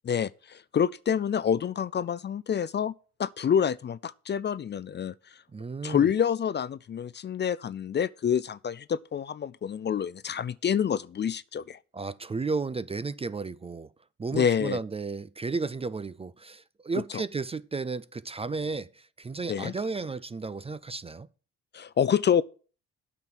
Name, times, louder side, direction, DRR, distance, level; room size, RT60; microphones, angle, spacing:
voice 1, 0.0-2.9 3.2-5.1 5.8-11.8 14.3-14.8 17.1-17.2 19.5-19.7 21.7-22.4, left 8 dB, 35° left, 0.5 m, -27 dB
voice 2, 5.5-6.1 11.9-13.9 14.2-21.3, right 4 dB, 20° right, 0.4 m, -33 dB
8.9 x 6.1 x 7.4 m
cardioid pair, 90°, 30 cm